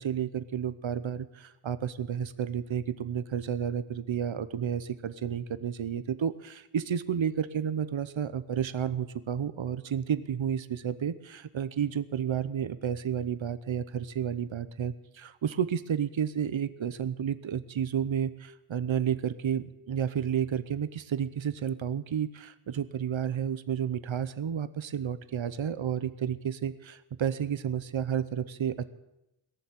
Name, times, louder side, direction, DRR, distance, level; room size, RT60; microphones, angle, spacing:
voice 1, 0.0-28.9, right 8 dB, 70° right, 14 dB, 0.9 m, -31 dB
18.0 x 7.1 x 9.8 m, 0.92 s
wide cardioid pair, 80°, 48 cm